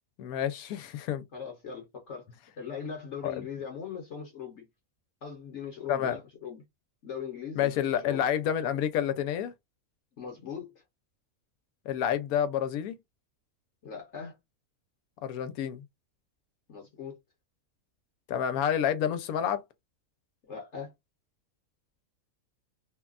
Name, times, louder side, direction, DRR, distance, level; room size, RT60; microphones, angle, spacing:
voice 1, 0.2-1.2 3.2-3.5 5.9-6.2 7.6-9.5 11.9-13.0 15.2-15.8 18.3-19.6, left 9 dB, 80° left, 1.0 m, -29 dB
voice 2, 1.3-2.3 2.6-4.7 5.2-6.6 7.0-8.2 10.1-10.7 13.8-14.4 16.7-17.2 20.4-20.9, left 7 dB, 60° left, 1.0 m, -40 dB
3.1 x 2.2 x 2.3 m
omnidirectional pair, 1.5 m